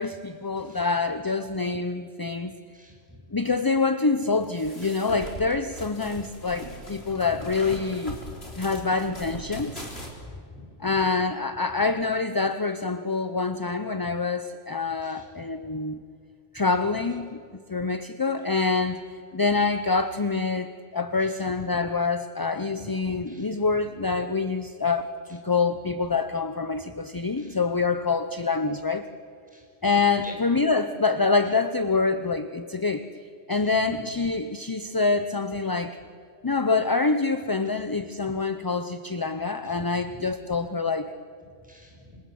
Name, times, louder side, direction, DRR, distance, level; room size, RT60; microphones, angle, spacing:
voice 1, 0.0-2.5 3.3-8.2 8.6-9.9 10.8-16.0 16.5-17.4 17.7-29.1 29.8-33.0 33.5-36.0 36.4-41.1, left 4 dB, 25° left, 10 dB, 0.6 m, -26 dB
voice 2, 2.7-3.2 4.8-5.0 6.1-6.3 7.1-7.4 8.6-9.4 10.5-10.6 10.9-11.2 15.0-15.3 21.2-21.5 22.8-22.9 23.3-23.5 27.4-27.6 29.5-29.7 30.2-30.4 33.5-34.0 39.6-40.1 41.6-42.2, equal, 5° right, -1 dB, 6.9 m, -48 dB
sound 1, 4.4-10.1, equal, 55° left, 4.2 m, -40 dB
27.5 x 26.5 x 7.8 m, 2.3 s
omnidirectional pair, 1.2 m